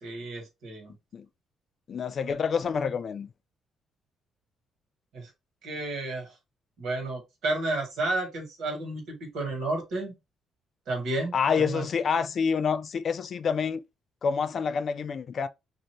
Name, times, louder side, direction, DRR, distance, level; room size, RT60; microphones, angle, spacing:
voice 1, 0.0-1.0 5.1-5.3 5.6-6.3 6.8-10.1 10.9-11.8, right 2 dB, 80° right, 1.6 m, -32 dB
voice 2, 1.9-3.3 11.3-13.8 14.2-15.5, left 6 dB, 50° left, 0.3 m, -27 dB
2.7 x 2.6 x 3.0 m
cardioid pair, 90°, 0 cm